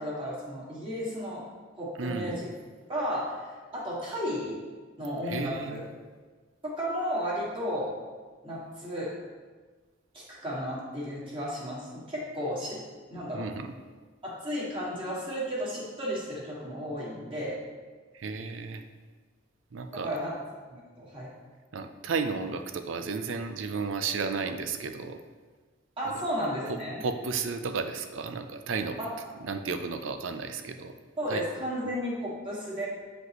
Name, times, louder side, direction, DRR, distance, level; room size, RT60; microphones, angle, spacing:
voice 1, 0.0-1.4 1.8-2.5 2.9-3.5 3.7-4.6 5.0-5.9 6.6-7.9 8.4-9.1 10.1-12.8 13.1-13.5 14.2-17.6 19.9-20.3 20.7-21.3 26.0-27.0 29.0-29.3 31.2-32.9, equal, 30° right, -7 dB, 1.8 m, -33 dB
voice 2, 2.0-2.3 5.3-5.8 13.3-13.7 18.1-18.8 19.7-20.1 21.7-25.2 27.0-29.0 29.4-31.0 31.3-31.4, right 4 dB, 75° right, 8 dB, 0.5 m, -33 dB
7.9 x 5.2 x 3.0 m, 1.4 s
head